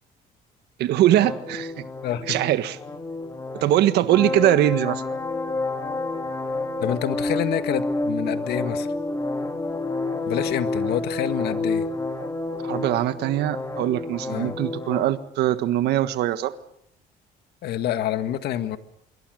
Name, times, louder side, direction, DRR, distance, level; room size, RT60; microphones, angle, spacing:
voice 1, 0.8-1.7 2.3-2.8 3.6-5.0 12.6-16.6, right 13 dB, 80° right, 12 dB, 1.5 m, -22 dB
sound 1, 1.0-15.0, left 2 dB, 20° left, 3.1 m, -29 dB
voice 2, 2.0-2.4 6.8-8.9 10.3-11.9 14.3-14.6 17.6-18.8, left 11 dB, 75° left, 10 dB, 1.8 m, -27 dB
26.0 x 23.0 x 6.5 m, 0.72 s
cardioid pair, 110°, 17 cm